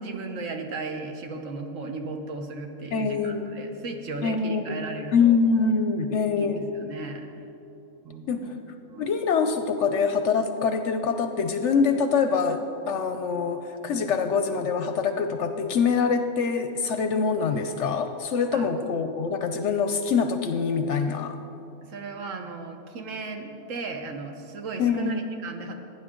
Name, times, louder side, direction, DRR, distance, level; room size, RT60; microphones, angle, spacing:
voice 1, 0.0-5.4 6.4-7.3 8.0-8.5 8.9-9.2 18.5-18.7 21.9-25.8, right 3 dB, 65° right, 4 dB, 1.3 m, -36 dB
voice 2, 2.9-3.5 4.2-4.8 5.1-6.6 8.3-8.5 9.0-21.4 24.8-25.2, left 5 dB, 65° left, 8 dB, 0.8 m, -24 dB
16.0 x 9.6 x 3.7 m, 2.9 s
omnidirectional pair, 1.5 m